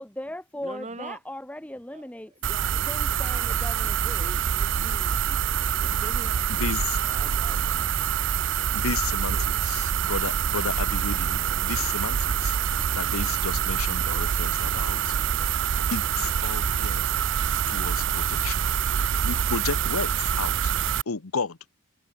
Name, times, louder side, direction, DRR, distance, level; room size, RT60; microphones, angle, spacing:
voice 1, 0.0-2.3 2.8-4.3, left 1 dB, 5° left, 1.0 m, -38 dB
voice 2, 0.6-1.2 1.9-2.0 2.5-2.7 3.3-3.4 4.1-5.5 6.0-6.7 7.0-8.1 9.3-9.4, right 2 dB, 30° right, 1.6 m, -43 dB
sound 1, 2.4-21.0, right 8 dB, 55° right, 0.4 m, -26 dB
sound 2, 3.6-5.7 6.0-8.7, left 16 dB, 45° left, 4.4 m, -57 dB
voice 3, 8.7-12.6 12.9-15.2 15.5-17.0 17.7-18.7 19.2-20.6 21.1-21.6, left 5 dB, 75° left, 1.0 m, -33 dB
head